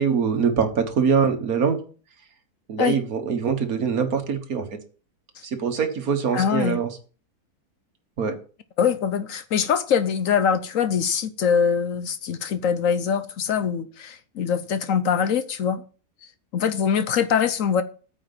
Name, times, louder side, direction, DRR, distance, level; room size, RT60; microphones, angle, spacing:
voice 1, 0.0-1.8 2.7-4.8 5.4-6.9 8.2-8.4, right 6 dB, 65° right, 1.8 m, -23 dB
voice 2, 6.3-6.8 8.8-15.8 16.5-17.8, left 7 dB, 65° left, 1.0 m, -23 dB
9.2 x 5.1 x 7.3 m
omnidirectional pair, 1.6 m